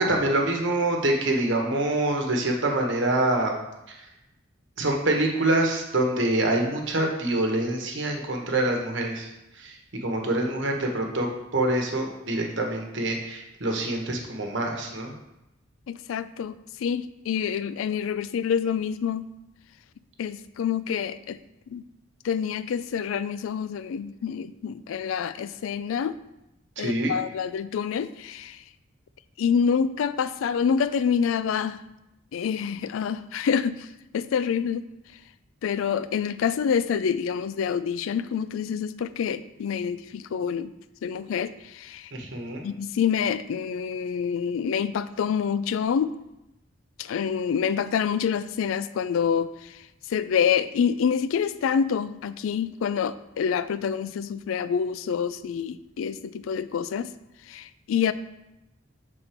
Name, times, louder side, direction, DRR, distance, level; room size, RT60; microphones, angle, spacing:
voice 1, 0.0-3.5 3.9-4.0 4.8-9.3 9.6-9.8 10.0-15.1 26.8-27.1 42.1-42.6, right 1 dB, 65° right, 1 dB, 1.1 m, -25 dB
voice 2, 15.9-19.3 20.2-21.4 21.7-21.8 22.2-26.2 26.8-28.6 29.4-31.8 32.3-33.9 34.1-34.9 35.6-40.7 41.0-42.1 42.6-46.1 47.0-49.8 50.1-57.1 57.5-58.1, left 7 dB, 85° left, 14 dB, 0.3 m, -27 dB
6.7 x 4.1 x 4.4 m, 0.92 s
head